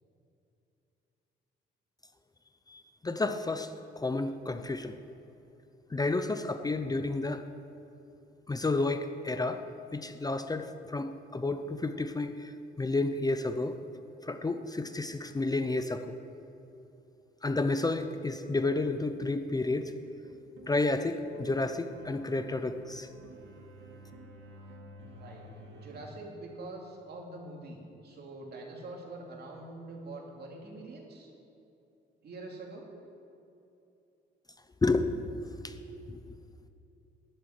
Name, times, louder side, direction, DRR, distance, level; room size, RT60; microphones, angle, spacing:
voice 1, 2.7-4.9 5.9-7.5 8.5-9.6 9.9-12.5 12.8-13.8 14.2-16.1 17.4-19.9 20.7-23.1 34.8-35.8 36.1-36.2, left 2 dB, 20° left, 9 dB, 0.6 m, -31 dB
sound 1, 18.5-26.1, right 2 dB, 70° right, 1.9 m, -52 dB
voice 2, 25.7-31.3 32.2-32.9, right 2 dB, 55° right, 0 dB, 2.8 m, -44 dB
11.0 x 7.5 x 9.1 m, 2.8 s
cardioid pair, 90°, 20 cm